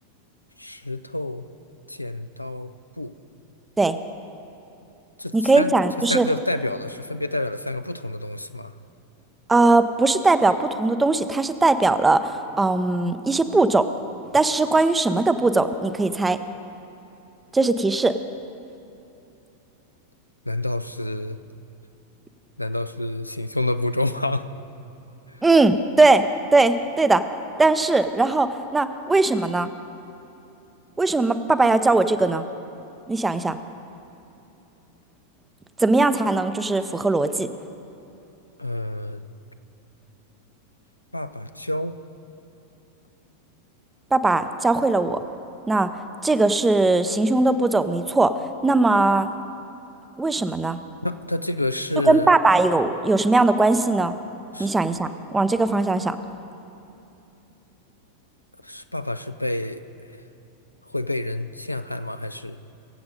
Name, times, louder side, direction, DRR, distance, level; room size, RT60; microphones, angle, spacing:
voice 1, 0.6-1.5 1.9-3.1 5.2-8.7 20.5-21.4 22.6-24.5 25.3-25.4 38.6-39.2 41.1-41.9 51.0-52.3 54.5-54.7 58.6-59.8 60.9-62.6, left 1 dB, 85° left, 11 dB, 0.4 m, -28 dB
voice 2, 5.3-6.3 9.5-13.9 14.3-16.4 17.5-18.1 25.4-26.2 26.5-27.2 27.6-29.7 31.0-32.4 33.1-33.6 35.8-37.5 44.1-45.2 45.7-45.9 46.2-48.3 48.6-49.3 50.2-50.8 52.0-54.2 54.6-56.2, right 3 dB, 10° right, 11 dB, 0.6 m, -19 dB
23.0 x 8.0 x 5.2 m, 2.9 s
figure-of-eight pair, 90°, 0 cm